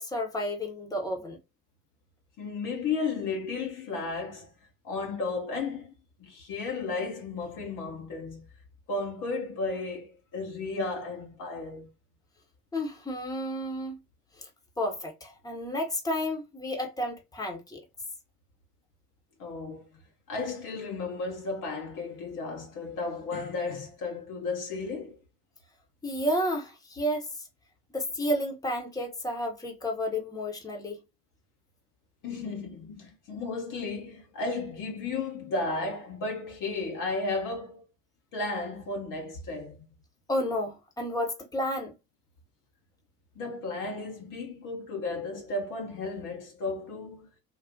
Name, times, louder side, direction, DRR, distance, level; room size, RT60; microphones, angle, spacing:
voice 1, 0.0-1.4 12.7-14.0 14.8-17.8 26.0-27.3 27.9-31.0 40.3-41.9, equal, 5° left, 1.0 m, -31 dB
voice 2, 2.4-4.5 4.8-5.9 6.2-8.5 8.9-11.9 19.4-19.8 20.3-25.2 32.2-37.8 38.3-39.9 43.4-47.3, left 3 dB, 40° left, 0.9 m, -34 dB
3.8 x 2.3 x 2.6 m
figure-of-eight pair, 60°, 50 cm